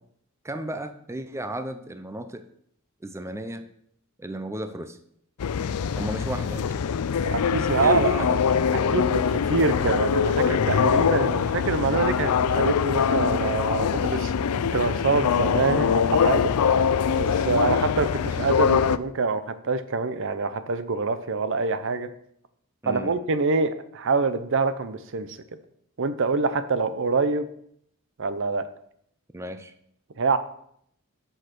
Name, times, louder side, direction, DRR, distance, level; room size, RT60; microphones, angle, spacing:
voice 1, 0.4-2.4 3.0-3.6 4.2-5.0 6.0-6.8 7.6-8.5 22.8-23.2 29.3-29.7, right 1 dB, 15° right, 9 dB, 0.5 m, -34 dB
sound 1, 5.4-19.0, left 7 dB, 85° left, 0.4 m, -23 dB
voice 2, 7.2-8.3 8.9-14.3 14.6-16.5 17.1-22.1 22.9-25.4 26.0-27.5 28.2-28.7 30.2-30.4, right 4 dB, 60° right, 12 dB, 0.7 m, -25 dB
7.8 x 6.6 x 6.1 m, 0.69 s
head